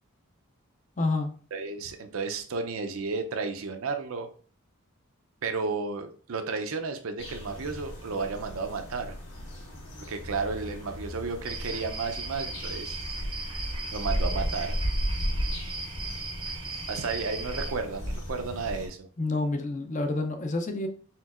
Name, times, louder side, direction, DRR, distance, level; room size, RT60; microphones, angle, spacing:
voice 1, 1.0-1.3 19.2-20.9, left 2 dB, 35° left, 6 dB, 0.5 m, -28 dB
voice 2, 1.5-4.3 5.4-9.1 10.1-13.0 13.5-13.6 13.9-14.8 16.9-19.1, right 4 dB, 75° right, 6 dB, 0.5 m, -33 dB
sound 1, 7.2-18.9, equal, 55° left, 1.9 m, -35 dB
sound 2, 11.5-17.7, right 3 dB, 20° right, 0.6 m, -38 dB
4.4 x 3.8 x 2.4 m, 0.42 s
head